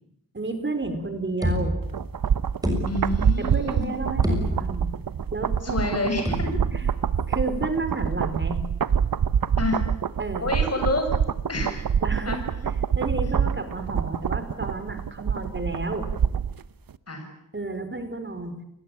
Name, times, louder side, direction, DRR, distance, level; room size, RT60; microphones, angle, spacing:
voice 1, 0.3-1.8 3.4-4.9 5.3-5.8 6.7-6.8 7.3-8.6 10.2-10.5 12.0-12.4 12.6-16.1 17.5-18.6, right 2 dB, 35° right, 9 dB, 4.3 m, -31 dB
sound 1, 0.8-1.0 1.4-2.2 2.6-3.4 3.8-3.9 4.2-5.0 6.2-6.9, right 1 dB, 10° right, 6.6 m, -28 dB
sound 2, 1.9-16.6 16.9-17.0, right 7 dB, 85° right, 1.0 m, -26 dB
voice 2, 2.9-3.9 5.6-6.4 9.5-9.8 10.4-11.1 11.5-11.8 12.2-12.4 17.1-17.2, left 2 dB, 45° left, 5 dB, 7.0 m, -28 dB
28.5 x 20.5 x 8.9 m, 0.74 s
wide cardioid pair, 105°, 33 cm